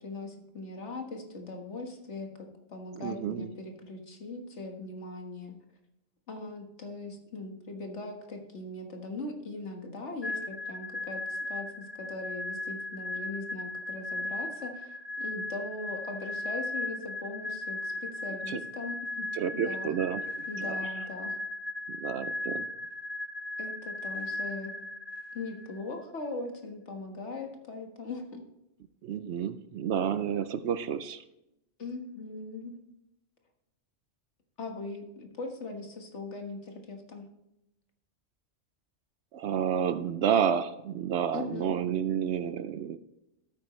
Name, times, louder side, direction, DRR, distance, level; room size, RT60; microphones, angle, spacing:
voice 1, 0.0-5.5 6.3-19.3 19.5-19.9 20.5-21.4 23.6-24.7 25.3-28.4 31.8-32.8 34.6-37.3 41.3-41.7, left 3 dB, 65° left, 3 dB, 1.8 m, -40 dB
voice 2, 3.0-3.5 18.5-18.6 19.3-20.2 20.6-20.9 21.9-22.7 29.0-31.2 39.3-43.0, right 8 dB, 65° right, 13 dB, 0.8 m, -30 dB
sound 1, 10.2-25.8, left 2 dB, 25° left, 0.6 m, -37 dB
12.5 x 8.8 x 3.2 m, 0.88 s
omnidirectional pair, 1.3 m